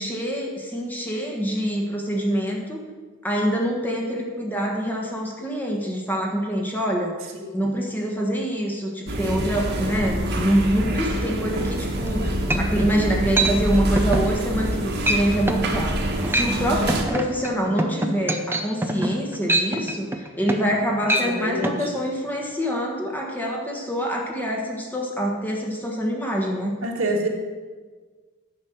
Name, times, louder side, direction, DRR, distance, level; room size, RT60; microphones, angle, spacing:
voice 1, 0.0-2.9 3.2-7.2 7.5-16.0 16.3-26.7, equal, 10° left, -1 dB, 1.4 m, -25 dB
sound 1, 9.1-17.0, right 1 dB, 50° right, 1.6 m, -26 dB
sound 2, 12.1-12.2 12.5-12.9 13.4-13.5 14.0-14.3 14.6-14.8 15.1-15.2 15.5-15.7 16.1-16.5 16.9-20.8 21.0-21.3 21.6-21.8, right 1 dB, 10° right, 0.7 m, -24 dB
voice 2, 21.1-21.9 26.8-27.3, right 1 dB, 75° right, 0 dB, 1.9 m, -27 dB
10.5 x 6.3 x 7.7 m, 1.5 s
head